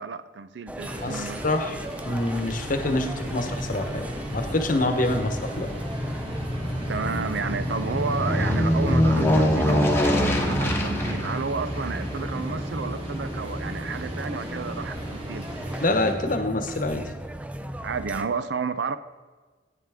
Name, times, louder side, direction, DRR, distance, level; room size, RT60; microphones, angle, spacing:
voice 1, 0.0-1.4 6.9-15.4 17.8-19.0, right 5 dB, 85° right, 12 dB, 0.5 m, -31 dB
sound 1, 0.7-18.2, right 1 dB, 10° right, 0.4 m, -37 dB
sound 2, 0.8-16.1, equal, 35° right, 1.7 m, -37 dB
voice 2, 1.0-1.7 2.1-4.1 4.3-5.7 15.8-17.1, left 2 dB, 50° left, 6 dB, 1.0 m, -26 dB
Aircraft, 2.5-15.0 15.4-15.5, left 1 dB, 15° left, 1.1 m, -27 dB
11.0 x 9.2 x 3.6 m, 1.4 s
head